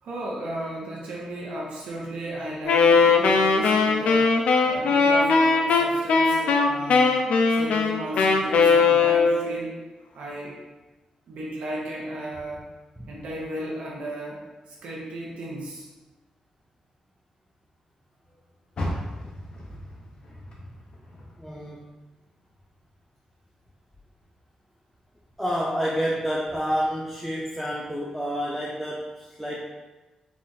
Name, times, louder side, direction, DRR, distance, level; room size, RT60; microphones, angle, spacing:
voice 1, 0.0-4.3 4.6-7.1 7.5-9.8 10.1-10.6 11.3-12.6 13.1-15.9, right 1 dB, 85° right, -4 dB, 0.8 m, -35 dB
Wind instrument woodwind instrument, 2.7-9.6, left 4 dB, 85° left, 0.4 m, -19 dB
Car, 18.7-22.0 22.4-23.8 24.2-24.3 24.9-25.0, left 1 dB, 45° left, 0.7 m, -36 dB
voice 2, 21.4-21.9 25.4-29.6, equal, ahead, -5 dB, 0.4 m, -29 dB
3.9 x 2.4 x 4.0 m, 1.1 s
wide cardioid pair, 165°, 2 cm